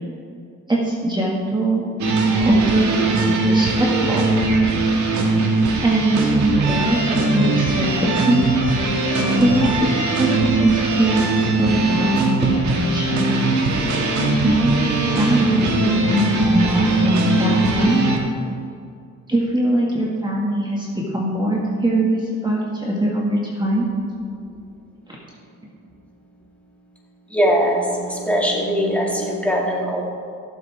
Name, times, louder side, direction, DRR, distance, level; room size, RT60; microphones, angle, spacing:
voice 1, 0.7-1.8 2.4-4.2 5.8-8.5 9.4-13.2 14.4-18.2 19.3-23.9 25.1-25.2, right 1 dB, 15° right, -4 dB, 1.8 m, -22 dB
sound 1, 2.0-18.2, right 3 dB, 70° right, 1.8 m, -20 dB
voice 2, 27.3-30.0, equal, 5° left, -3 dB, 2.2 m, -21 dB
17.0 x 7.6 x 3.5 m, 2.3 s
cardioid pair, 90°, 30 cm